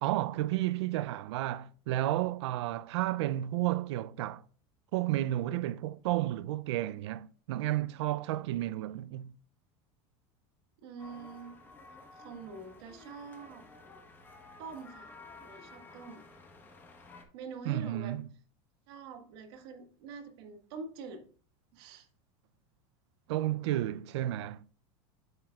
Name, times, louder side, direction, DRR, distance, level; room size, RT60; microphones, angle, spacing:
voice 1, 0.0-4.4 4.9-9.3 17.6-18.3 23.3-24.7, right 14 dB, 85° right, 0.4 m, -32 dB
voice 2, 10.8-11.6 12.1-13.7 14.6-15.1 15.4-16.2 17.3-18.1 18.9-21.2 21.7-22.1, right 4 dB, 65° right, 1.5 m, -45 dB
sound 1, 11.0-17.3, left 3 dB, 15° left, 1.0 m, -53 dB
7.6 x 7.5 x 2.3 m
supercardioid pair, 160°, 14 cm